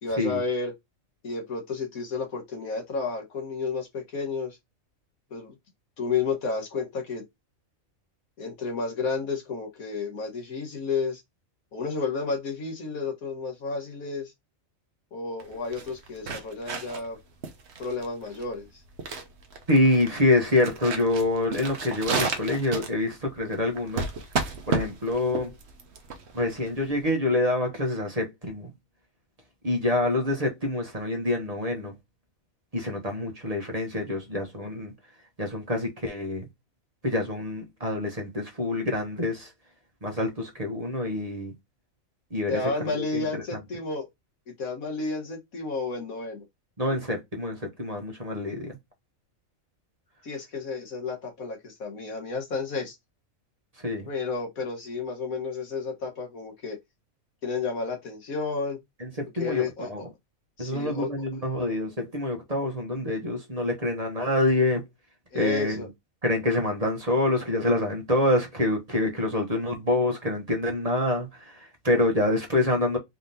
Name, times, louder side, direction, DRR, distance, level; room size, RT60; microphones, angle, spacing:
voice 1, 0.0-0.7 1.2-4.6 5.3-5.6 6.0-7.2 8.4-11.2 11.7-14.3 15.1-17.2 17.8-18.7 42.5-44.1 44.6-46.4 50.2-53.0 54.1-56.8 57.4-58.8 59.4-60.1 60.6-61.1 65.3-65.9, left 4 dB, 85° left, 1.9 m, -31 dB
sound 1, 15.4-27.1, right 4 dB, 55° right, 1.1 m, -33 dB
voice 2, 19.7-24.1 24.7-25.5 26.3-28.7 29.6-31.9 32.7-34.9 35.4-36.5 37.0-39.5 40.0-41.5 42.3-43.4 46.8-48.8 53.8-54.1 59.0-60.0 60.6-64.8 65.3-65.9 66.2-73.0, left 1 dB, 30° right, 1.2 m, -26 dB
4.4 x 3.6 x 2.7 m
omnidirectional pair, 1.4 m